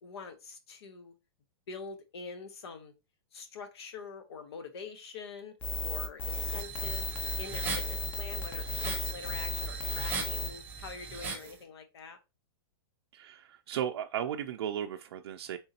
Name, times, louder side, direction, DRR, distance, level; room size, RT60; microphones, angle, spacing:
voice 1, 0.0-1.1 1.7-2.9 3.3-5.6 5.8-7.1 7.4-12.2, left 5 dB, 85° left, 1.0 m, -45 dB
sound 1, 5.6-10.5, left 3 dB, 15° left, 0.4 m, -34 dB
sound 2, 6.2-11.5, right 5 dB, 15° right, 0.8 m, -39 dB
voice 2, 13.1-15.6, right 9 dB, 90° right, 0.4 m, -35 dB
3.8 x 3.6 x 2.8 m
supercardioid pair, 165°, 13 cm